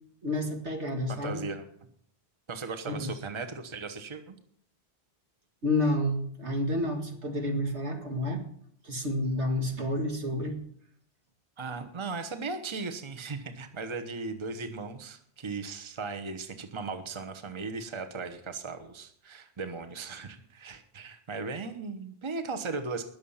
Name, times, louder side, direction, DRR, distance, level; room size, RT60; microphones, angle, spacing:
voice 1, 0.2-1.4 2.9-3.1 5.6-8.4 8.8-10.6, left 1 dB, 80° right, 3 dB, 2.4 m, -30 dB
voice 2, 1.1-1.7 2.5-4.4 11.6-23.0, right 4 dB, 25° right, 8 dB, 1.0 m, -37 dB
20.5 x 6.9 x 5.7 m, 0.66 s
omnidirectional pair, 1.1 m